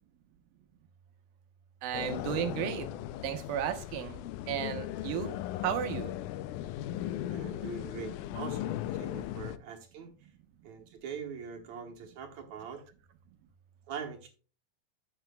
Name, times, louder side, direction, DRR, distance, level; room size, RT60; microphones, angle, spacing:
voice 1, 1.8-2.9 3.2-5.4 5.6-6.1, right 10 dB, 85° right, 8 dB, 2.8 m, -34 dB
sound 1, 1.9-9.6, left 13 dB, 85° left, 1.8 m, -37 dB
voice 2, 7.3-10.1 10.6-12.8 13.9-14.3, right 6 dB, 65° right, 2 dB, 2.2 m, -42 dB
12.0 x 8.0 x 2.3 m, 0.36 s
omnidirectional pair, 4.1 m